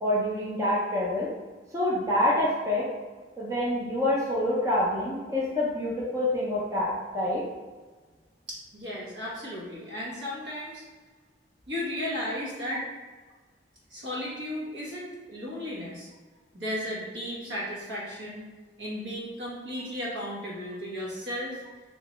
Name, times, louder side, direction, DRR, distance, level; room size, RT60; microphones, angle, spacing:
voice 1, 0.0-1.3 1.7-2.9 3.4-7.4, left 1 dB, 15° right, -6 dB, 0.6 m, -26 dB
voice 2, 8.5-10.8 11.7-12.9 13.9-16.1 16.5-18.5 18.8-21.6, left 1 dB, 70° right, -5 dB, 1.2 m, -35 dB
3.2 x 3.1 x 3.0 m, 1.3 s
head